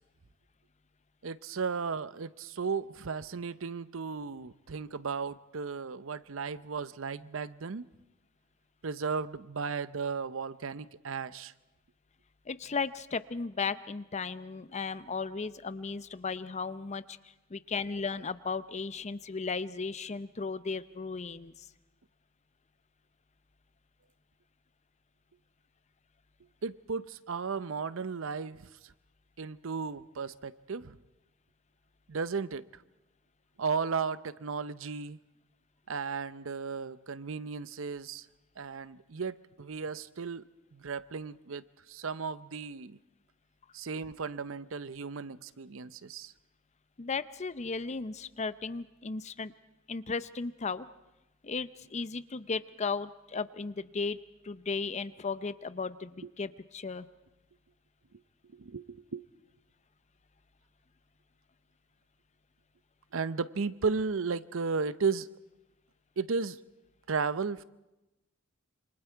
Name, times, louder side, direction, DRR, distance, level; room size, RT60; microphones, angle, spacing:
voice 1, 1.2-7.9 8.8-11.5 26.6-28.9 29.4-31.0 32.1-32.6 33.6-35.2 35.9-38.3 38.6-40.4 40.7-43.0 43.7-46.3 58.5-59.2 63.1-65.3 66.2-66.6 67.1-67.6, right 5 dB, 75° right, 0.7 m, -35 dB
voice 2, 12.5-17.2 17.5-21.7 47.0-49.5 49.9-50.9 51.4-57.1, left 4 dB, 35° left, 0.6 m, -35 dB
27.5 x 24.5 x 4.6 m
head